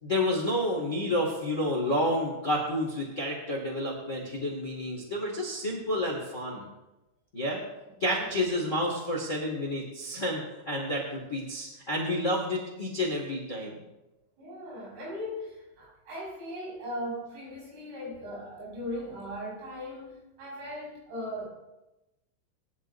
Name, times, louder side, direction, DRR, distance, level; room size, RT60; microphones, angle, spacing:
voice 1, 0.0-6.6 7.3-7.6 8.0-13.8, left 1 dB, 35° left, -2 dB, 1.1 m, -30 dB
voice 2, 8.2-8.7 14.4-21.5, equal, 80° right, -5 dB, 8.1 m, -39 dB
21.0 x 11.0 x 2.7 m, 1.0 s
omnidirectional pair, 5.4 m